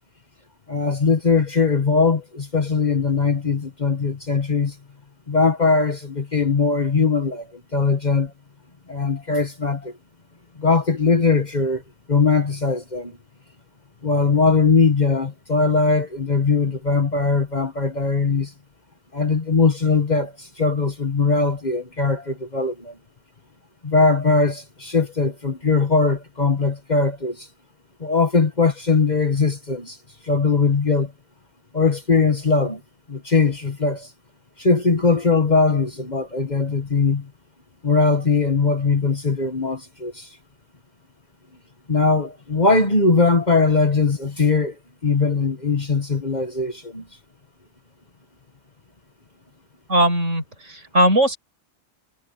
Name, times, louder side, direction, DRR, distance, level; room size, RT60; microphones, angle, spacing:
voice 1, 0.7-4.8 5.3-8.3 8.9-9.9 10.6-11.8 12.1-13.2 14.0-18.5 19.1-23.0 23.8-27.5 28.0-30.0 30.2-31.1 31.7-32.8 33.1-34.1 34.6-37.3 37.8-40.3 41.9-44.7 45.0-47.1, left 4 dB, 35° left, 1.5 m, -20 dB
voice 2, 49.9-51.4, right 1 dB, 70° right, 7.6 m, -19 dB
omnidirectional pair, 1.3 m